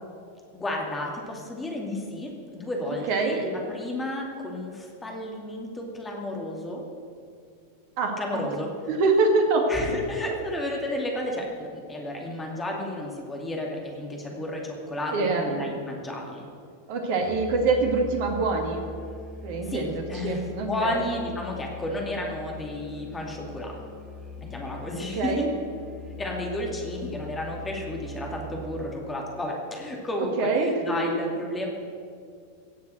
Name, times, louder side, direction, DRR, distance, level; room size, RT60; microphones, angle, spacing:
voice 1, 0.5-6.8 8.2-8.7 9.7-16.5 19.6-23.8 24.4-25.5 26.2-31.7, left 1 dB, 15° left, 0 dB, 2.4 m, -32 dB
voice 2, 2.9-3.4 8.0-8.4 8.9-9.7 15.1-15.7 16.9-18.8 19.4-21.0 25.2-25.5 30.2-30.7, right 3 dB, 50° right, 3 dB, 2.1 m, -25 dB
Musical instrument, 17.2-29.1, left 2 dB, 15° right, 1.7 m, -41 dB
17.0 x 7.2 x 7.8 m, 2.3 s
figure-of-eight pair, 90°, 0 cm